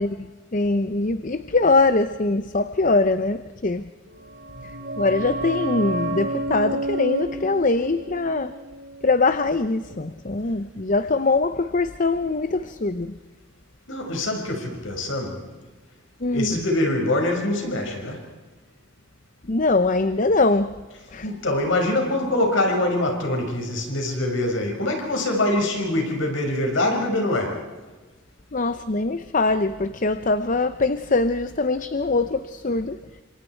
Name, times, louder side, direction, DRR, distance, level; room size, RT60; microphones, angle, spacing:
voice 1, 0.0-3.9 5.0-8.5 9.0-13.2 16.2-16.6 19.5-20.8 21.1-21.3 28.5-33.0, left 3 dB, 40° left, 11 dB, 0.8 m, -22 dB
sound 1, 4.2-9.6 9.8-9.9, right 1 dB, 65° right, 2.6 m, -30 dB
voice 2, 13.9-15.5 16.3-18.2 21.2-27.6, left 1 dB, 75° left, 2 dB, 5.7 m, -24 dB
30.0 x 26.5 x 4.6 m, 1.3 s
head